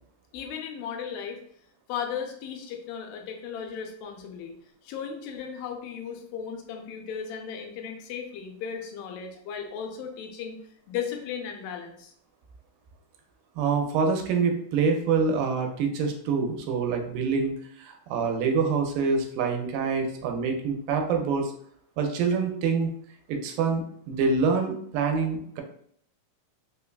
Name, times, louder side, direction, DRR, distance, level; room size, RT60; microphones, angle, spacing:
voice 1, 0.3-1.4 1.9-4.6 4.8-10.6 10.9-12.1, left 7 dB, 90° left, 3 dB, 2.3 m, -36 dB
voice 2, 13.6-21.5 22.0-22.9 23.3-25.6, right 5 dB, 85° right, 4 dB, 2.3 m, -26 dB
5.4 x 2.2 x 2.3 m, 0.64 s
omnidirectional pair, 4.0 m